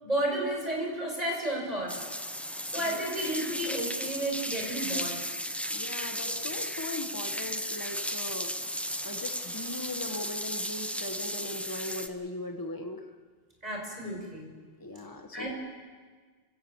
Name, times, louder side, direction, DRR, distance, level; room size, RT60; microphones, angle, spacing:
voice 1, 0.0-2.1 2.6-5.2 13.6-14.5 15.3-15.5, right 1 dB, 35° right, -1 dB, 5.7 m, -32 dB
sound 1, 1.9-12.1, equal, ahead, 0.7 m, -35 dB
voice 2, 5.7-8.5 9.0-13.1 14.8-15.5, left 2 dB, 20° left, 4 dB, 1.4 m, -39 dB
28.0 x 16.5 x 7.2 m, 1.5 s
omnidirectional pair, 1.2 m